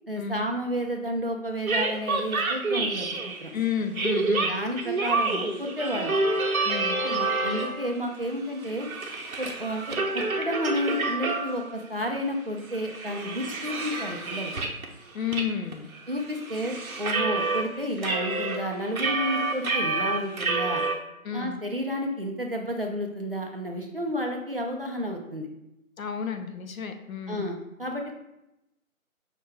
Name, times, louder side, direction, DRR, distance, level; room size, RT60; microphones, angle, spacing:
voice 1, 0.1-3.5 4.5-6.2 7.0-8.9 9.4-14.5 16.1-20.8 21.3-25.5 27.3-28.1, equal, 45° right, 1 dB, 0.4 m, -31 dB
sound 1, 1.7-3.5 3.9-8.0 8.3-11.8 12.1-12.2 12.6-14.9 15.3-15.5 15.7-17.6 18.0-20.9, right 3 dB, 75° right, 0.8 m, -28 dB
voice 2, 3.5-4.6 6.6-7.0 15.1-15.9 21.2-21.6 26.0-27.5, left 7 dB, 70° left, 7 dB, 0.6 m, -31 dB
5.6 x 2.2 x 3.4 m, 0.87 s
figure-of-eight pair, 170°, 42 cm